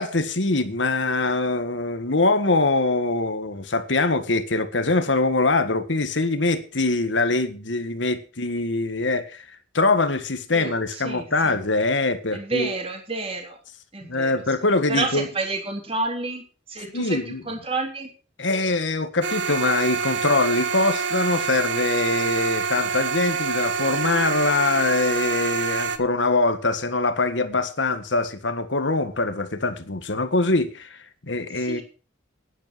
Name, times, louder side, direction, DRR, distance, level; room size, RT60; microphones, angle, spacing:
voice 1, 0.0-9.5 9.7-12.8 14.1-15.3 16.9-17.4 18.4-31.8, left 3 dB, 70° left, 1.7 m, -23 dB
voice 2, 10.5-11.6 12.3-13.6 13.9-18.1 31.5-31.8, right 3 dB, 30° right, 3.8 m, -30 dB
sound 1, 19.2-26.0, right 5 dB, 70° right, 1.5 m, -26 dB
10.5 x 10.5 x 6.2 m
head